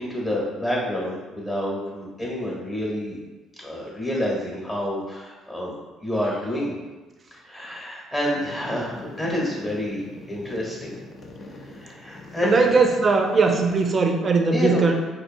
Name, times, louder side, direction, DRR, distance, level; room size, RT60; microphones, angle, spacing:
voice 1, 0.0-3.2 3.6-5.7 6.0-6.7 7.3-10.9 11.7-12.6 14.5-14.9, left 1 dB, 10° left, -4 dB, 1.1 m, -28 dB
sound 1, 8.3-13.9, left 2 dB, 40° left, 0.5 m, -42 dB
voice 2, 12.4-14.9, right 4 dB, 35° right, 4 dB, 0.4 m, -20 dB
4.2 x 2.7 x 2.6 m, 1.2 s
cardioid pair, 115°, 0 cm